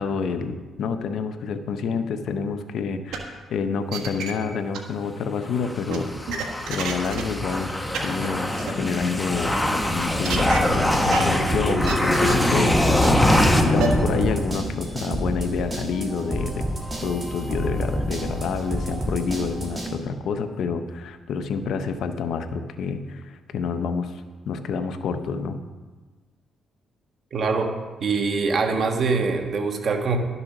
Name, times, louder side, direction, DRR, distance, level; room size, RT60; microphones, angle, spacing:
voice 1, 0.0-7.7 8.0-16.6 17.0-25.6, left 5 dB, 70° left, 9 dB, 0.8 m, -28 dB
sound 1, 3.1-3.2 3.6-4.3 4.7-4.8 5.9-7.2 7.5-7.6 7.9-8.0 8.2-8.3 8.5-8.7 10.2-10.6 11.1-11.2 11.7-11.9 12.2-12.5 13.0-13.1 13.8-13.9, right 8 dB, 90° right, 1.5 m, -28 dB
sound 2, 5.5-14.9, left 1 dB, 10° left, 1.1 m, -23 dB
sound 3, 10.3-19.9, right 1 dB, 20° right, 2.8 m, -30 dB
voice 2, 27.3-27.7 28.0-30.2, right 4 dB, 55° right, 4 dB, 1.5 m, -23 dB
12.0 x 6.9 x 5.9 m, 1.3 s
cardioid pair, 90°, 0 cm